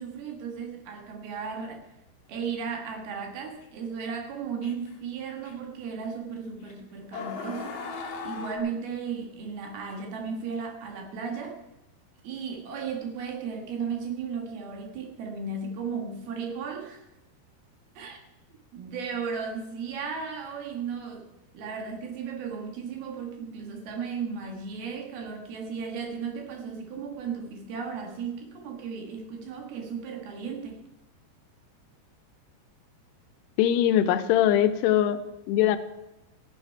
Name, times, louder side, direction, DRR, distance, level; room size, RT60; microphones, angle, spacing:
voice 1, 0.0-1.8 2.3-11.6 12.2-17.1 18.0-18.2 18.7-21.3 21.5-30.8, right 5 dB, 70° right, 3.5 m, -35 dB
sound 1, 3.6-3.7 4.6-4.9 5.4-5.6 6.6-6.7 7.1-8.6, left 5 dB, 55° left, 1.9 m, -37 dB
voice 2, 33.6-35.2 35.5-35.8, left 11 dB, 85° left, 2.8 m, -21 dB
15.5 x 10.0 x 4.6 m
omnidirectional pair, 4.7 m